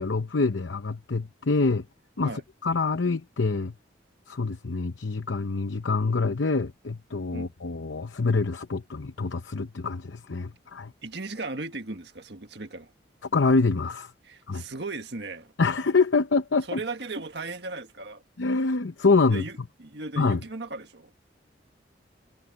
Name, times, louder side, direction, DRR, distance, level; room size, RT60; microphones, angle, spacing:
voice 1, 0.0-1.8 2.2-3.7 4.3-10.9 13.3-14.1 14.5-14.6 15.6-16.8 18.4-19.4 20.2-20.4, left 3 dB, 80° left, 0.8 m, -25 dB
voice 2, 11.0-12.9 14.2-15.5 16.7-18.2 19.3-21.1, right 3 dB, 65° right, 1.7 m, -36 dB
head